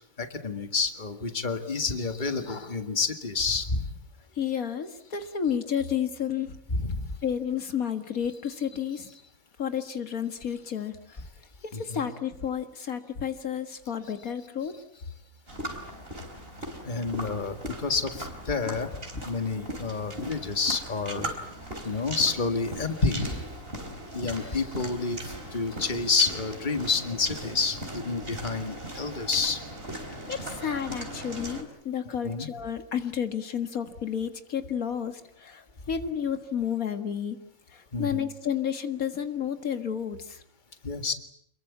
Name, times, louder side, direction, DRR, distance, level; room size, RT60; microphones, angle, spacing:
voice 1, 0.2-3.9 6.7-7.0 11.7-12.0 16.8-18.9 19.3-21.3 21.8-23.4 24.1-29.6 32.1-32.5 37.9-38.2 40.8-41.1, left 4 dB, 35° left, 8 dB, 2.1 m, -29 dB
voice 2, 4.4-6.6 7.2-9.1 9.6-11.2 11.7-14.8 30.3-37.4 37.7-40.4, left 8 dB, 80° left, 8 dB, 2.1 m, -31 dB
sound 1, 15.5-31.6, right 1 dB, 40° right, 4.3 m, -39 dB
28.0 x 22.0 x 8.5 m, 0.71 s
omnidirectional pair, 1.5 m